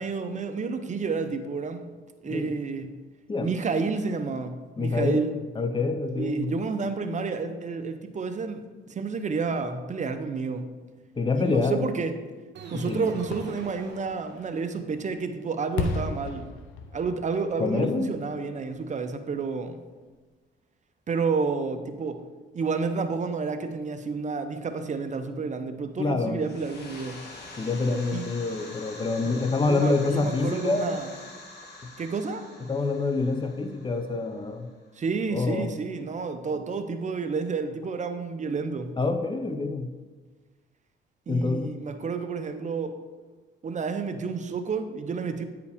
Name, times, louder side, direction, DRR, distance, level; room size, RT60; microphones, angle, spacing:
voice 1, 0.0-1.9 2.2-2.9 3.4-5.3 6.2-10.7 11.4-12.2 12.7-16.5 16.9-19.8 21.1-22.2 22.5-27.2 28.1-28.3 29.2-31.1 32.0-32.4 35.0-39.0 41.3-43.0 43.6-45.4, right 4 dB, 35° right, 8 dB, 0.6 m, -30 dB
voice 2, 4.8-6.5 11.2-11.8 12.7-13.1 17.6-18.1 26.0-26.4 27.6-31.0 32.7-34.7 35.3-35.7 39.0-39.9 41.3-41.7, left 3 dB, 25° left, 7 dB, 0.6 m, -26 dB
sound 1, 12.5-14.9, right 4 dB, 65° right, 1.0 m, -44 dB
Fireworks, 13.2-19.0 19.4-19.5, left 3 dB, 85° left, 0.8 m, -36 dB
sound 2, 26.3-34.9, left 2 dB, 55° left, 1.8 m, -45 dB
9.3 x 4.8 x 3.5 m, 1.3 s
cardioid pair, 90°, 20 cm